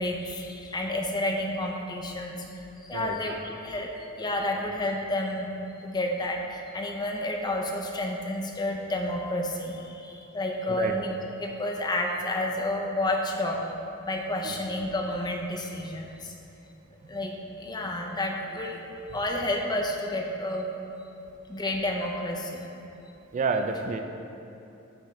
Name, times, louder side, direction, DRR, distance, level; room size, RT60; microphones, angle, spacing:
voice 1, 0.0-3.4 3.6-5.5 5.8-13.7 14.0-16.3 17.1-18.9 19.1-20.7 21.5-22.7, left 1 dB, 20° left, 0 dB, 0.5 m, -30 dB
voice 2, 23.3-24.0, right 4 dB, 35° right, 6 dB, 0.3 m, -29 dB
9.8 x 3.7 x 3.1 m, 2.8 s
head